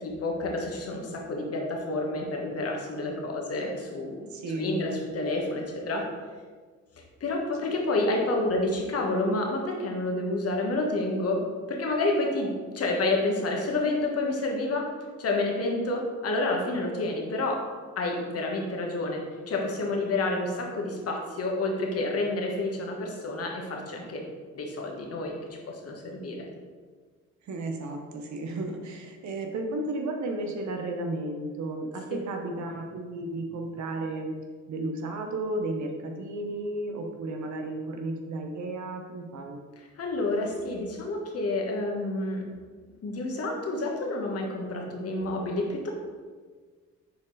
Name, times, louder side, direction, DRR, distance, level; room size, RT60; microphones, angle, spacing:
voice 1, 0.0-4.3 4.5-6.0 7.2-11.4 11.7-14.9 15.2-17.6 18.0-24.2 24.5-25.3 25.7-26.5 32.1-32.2 39.8-42.4 43.0-45.9, left 2 dB, 50° left, 0 dB, 1.4 m, -29 dB
voice 2, 4.3-4.8 27.4-34.3 34.7-39.6, right 2 dB, 70° right, 3 dB, 0.9 m, -33 dB
6.6 x 4.5 x 4.0 m, 1.5 s
cardioid pair, 90°, 30 cm